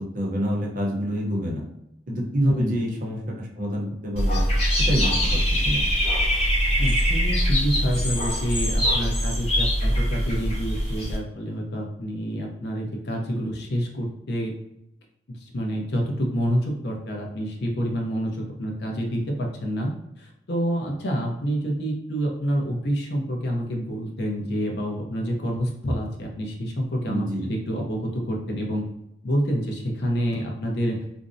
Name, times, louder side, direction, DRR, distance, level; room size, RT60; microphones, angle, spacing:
voice 1, 0.1-1.6 2.1-4.4 4.8-5.9 27.1-27.5, equal, 50° right, -2 dB, 0.6 m, -27 dB
voice 2, 2.5-2.8 6.8-14.6 15.3-19.9 20.2-28.8 29.2-31.0, equal, 65° left, 0 dB, 0.6 m, -28 dB
Dog / Bird, 4.2-11.2, equal, 35° left, 0.8 m, -23 dB
2.5 x 2.0 x 2.5 m, 0.82 s
head